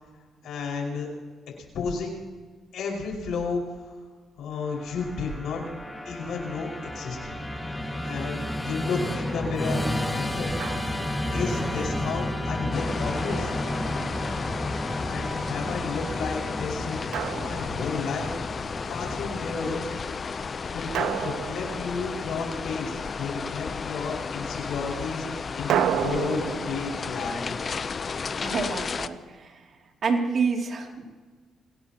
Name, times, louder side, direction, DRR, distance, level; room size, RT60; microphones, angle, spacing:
voice 1, 0.4-1.1 1.7-2.2 2.7-3.9 4.4-5.6 6.1-7.4 8.0-9.8 10.1-10.5 11.3-13.5 15.1-17.0 17.4-18.3 18.9-20.1 20.7-25.3 25.5-25.7 26.0-27.6, left 4 dB, 75° left, -1 dB, 5.5 m, -32 dB
Musical instrument, 4.6-19.9, left 1 dB, 10° left, 1.9 m, -32 dB
Drum, 10.6-11.3 13.3-14.4 17.1-18.3 20.9-22.6 25.7-28.7, right 9 dB, 80° right, 0.8 m, -32 dB
sound 1, 12.7-29.1, left 5 dB, 40° left, 0.7 m, -33 dB
voice 2, 28.4-29.6 30.0-31.0, right 4 dB, 55° right, 2 dB, 2.8 m, -28 dB
26.5 x 18.0 x 3.0 m, 1.4 s
cardioid pair, 95°, 0 cm